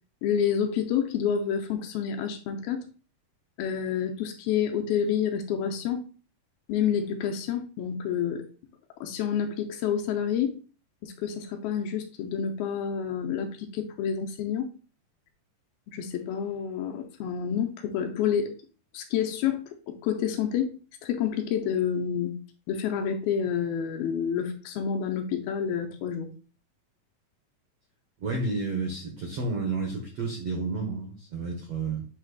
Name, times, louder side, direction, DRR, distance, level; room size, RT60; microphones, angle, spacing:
voice 1, 0.2-2.9 3.6-6.0 6.7-8.4 9.0-10.6 11.0-14.7 15.9-18.5 18.9-20.7 21.0-22.4 22.7-26.3, left 8 dB, 80° left, 4 dB, 2.4 m, -28 dB
voice 2, 28.2-32.1, right 3 dB, 80° right, 1 dB, 1.4 m, -31 dB
8.3 x 3.0 x 3.9 m, 0.37 s
omnidirectional pair, 4.5 m